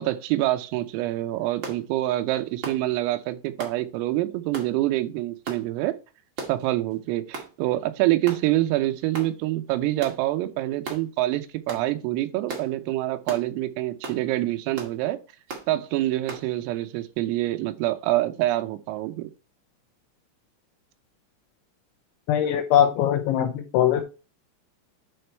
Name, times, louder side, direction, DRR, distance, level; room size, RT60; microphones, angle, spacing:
voice 1, 0.0-6.0 6.5-15.2 15.7-19.3, right 16 dB, 85° right, 3.5 m, -26 dB
sound 1, 1.6-1.8 2.6-2.8 3.6-3.8 4.5-4.7 5.4-5.6 6.4-6.6 7.3-7.5 8.2-8.4 9.1-9.3 10.0-10.2 10.8-11.0 11.7-11.9 12.5-12.7 13.3-13.5 14.0-14.2 14.7-14.9 15.5-15.7 16.3-16.4, right 4 dB, 60° right, 1.3 m, -35 dB
voice 2, 22.3-24.0, left 10 dB, 85° left, 2.7 m, -21 dB
9.9 x 4.4 x 4.5 m
omnidirectional pair, 5.9 m